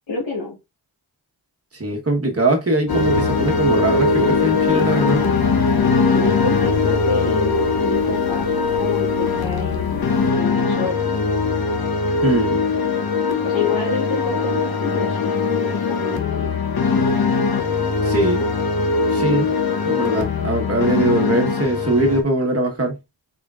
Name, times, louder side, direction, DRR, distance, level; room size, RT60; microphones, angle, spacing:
voice 1, 0.1-0.6 6.0-11.3 13.4-16.5, left 3 dB, 75° left, 1.7 m, -28 dB
voice 2, 1.7-5.2 12.2-12.6 18.0-18.5 19.1-19.5 19.8-23.0, right 2 dB, 30° right, 1.3 m, -21 dB
sound 1, 2.9-22.2, left 4 dB, 50° left, 0.8 m, -20 dB
3.6 x 3.6 x 2.4 m
cardioid pair, 45°, 46 cm